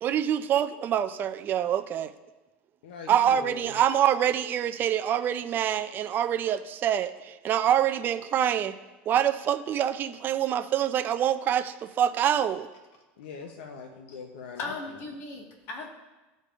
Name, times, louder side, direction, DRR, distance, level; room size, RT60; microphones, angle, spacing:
voice 1, 0.0-2.1 3.1-8.7 9.1-12.7, right 10 dB, 35° right, 8 dB, 0.5 m, -25 dB
voice 2, 2.8-3.8 13.2-14.7, left 5 dB, 90° left, 4 dB, 0.8 m, -42 dB
voice 3, 14.5-15.9, left 3 dB, 45° left, 1 dB, 1.7 m, -37 dB
15.0 x 5.2 x 2.5 m, 1.1 s
supercardioid pair, 125°, 6 cm